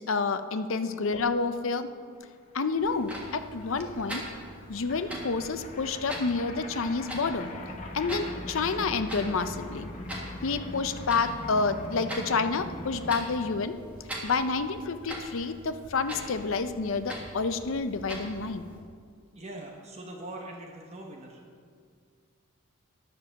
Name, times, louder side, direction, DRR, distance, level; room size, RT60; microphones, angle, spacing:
voice 1, 0.0-1.9 2.5-4.2 4.7-7.5 7.9-9.9 10.4-13.8 14.2-18.7, left 4 dB, 70° left, 10 dB, 0.6 m, -29 dB
sound 1, 2.3-2.4 2.5-13.4, left 1 dB, 30° left, 1.0 m, -42 dB
Clock, 2.8-18.8, equal, 5° right, 1.5 m, -43 dB
voice 2, 19.3-21.4, right 1 dB, 30° right, 0 dB, 1.1 m, -43 dB
10.5 x 6.9 x 6.5 m, 2.1 s
head